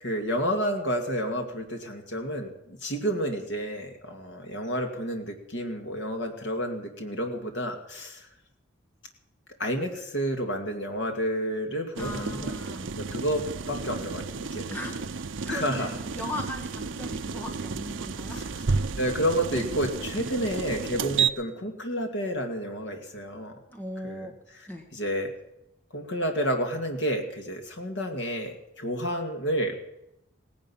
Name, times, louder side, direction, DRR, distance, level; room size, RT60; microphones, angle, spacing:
voice 1, 0.0-8.3 9.6-14.7 15.5-16.0 18.3-18.5 19.0-23.5 24.0-25.3 25.9-29.8, equal, 65° left, 3 dB, 2.4 m, -30 dB
voice 2, 12.0-12.9 14.7-18.5 20.4-20.5 23.7-24.3 24.7-24.8, left 1 dB, 10° left, 1 dB, 1.7 m, -38 dB
sound 1, 12.0-21.3, right 5 dB, 75° right, 0.6 m, -32 dB
17.5 x 11.0 x 7.2 m, 0.86 s
head